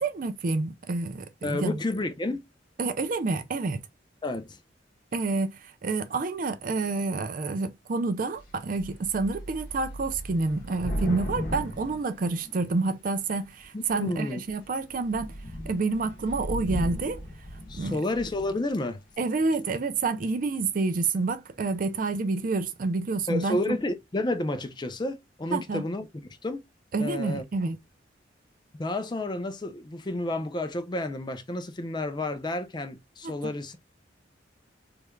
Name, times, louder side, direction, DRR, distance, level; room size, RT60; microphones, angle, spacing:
voice 1, 0.0-1.8 2.8-3.8 5.1-15.3 15.7-17.2 17.7-18.0 19.2-23.6 25.5-25.8 26.9-27.8 33.2-33.5, right 3 dB, 45° right, 0.4 m, -28 dB
voice 2, 1.4-2.4 4.2-4.6 13.7-14.4 17.7-19.0 23.3-26.1 26.4-26.6 27.0-27.4 28.8-33.8, left 2 dB, 25° left, 0.5 m, -30 dB
Thunder / Rain, 8.4-8.5 8.8-12.9 13.6-14.1 14.5-14.6 14.9-18.7, equal, 50° left, 1.2 m, -36 dB
3.4 x 3.2 x 2.2 m
head